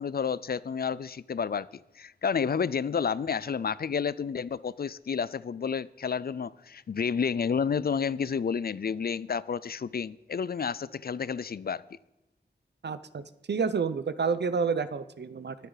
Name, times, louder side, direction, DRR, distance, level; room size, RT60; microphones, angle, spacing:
voice 1, 0.0-1.7 2.0-11.8, left 6 dB, 65° left, 0.4 m, -30 dB
voice 2, 12.8-13.2 13.5-15.6, right 5 dB, 85° right, 0.7 m, -29 dB
22.5 x 8.3 x 4.0 m
wide cardioid pair, 80°, 17 cm